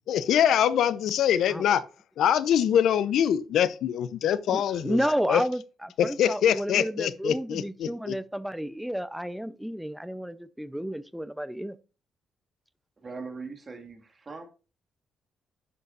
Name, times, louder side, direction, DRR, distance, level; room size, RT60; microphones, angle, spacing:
voice 1, 0.1-1.8 2.2-5.0 5.3-5.4 6.0-8.1, left 9 dB, 75° left, 0.6 m, -24 dB
voice 2, 4.5-11.8, equal, ahead, 0.5 m, -31 dB
voice 3, 13.0-14.4, right 4 dB, 35° right, 2.0 m, -40 dB
10.5 x 6.7 x 2.5 m
cardioid pair, 90°, 0 cm